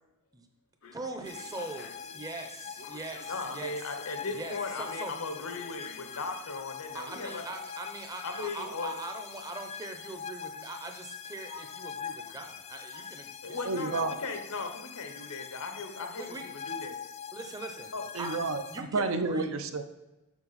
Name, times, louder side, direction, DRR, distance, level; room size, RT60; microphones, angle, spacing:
sound 1, 0.8-7.5, left 5 dB, 60° left, 0.7 m, -53 dB
voice 1, 0.9-3.7 4.3-5.1 6.9-13.9 15.9-16.4 17.3-17.9 18.2-18.3 18.7-19.4, right 2 dB, 15° right, 4 dB, 0.7 m, -42 dB
sound 2, 1.2-18.8, left 7 dB, 30° left, 0.3 m, -43 dB
voice 2, 3.3-7.4 8.2-8.9 11.5-11.7 12.3-12.4 12.9-13.1 13.4-16.4 16.7-17.0 17.9-18.1, left 3 dB, 80° left, 6 dB, 1.0 m, -37 dB
voice 3, 13.6-14.2 18.1-19.8, right 3 dB, 60° right, 9 dB, 0.6 m, -30 dB
7.2 x 6.0 x 4.1 m, 0.99 s
head